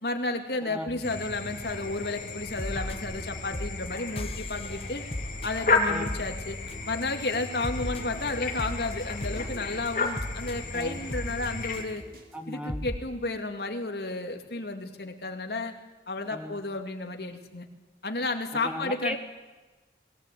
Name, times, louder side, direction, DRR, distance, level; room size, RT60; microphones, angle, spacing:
voice 1, 0.0-5.0 5.4-6.6 6.9-12.0 12.5-15.7 16.1-17.7 18.0-19.2, left 2 dB, 70° left, 4 dB, 2.4 m, -32 dB
voice 2, 0.7-1.0 5.9-6.2 10.7-11.1 12.3-12.9 16.3-16.6 18.6-19.2, equal, 5° right, 6 dB, 1.3 m, -36 dB
sound 1, 1.0-11.8, left 3 dB, 45° left, 3.0 m, -33 dB
sound 2, 2.3-2.4 2.6-3.3 3.5-7.0 7.3-12.1 12.4-12.5 12.7-13.0, left 1 dB, 30° left, 1.3 m, -37 dB
sound 3, 6.9-12.4, right 1 dB, 55° right, 3.3 m, -51 dB
22.0 x 17.5 x 9.2 m, 1.2 s
head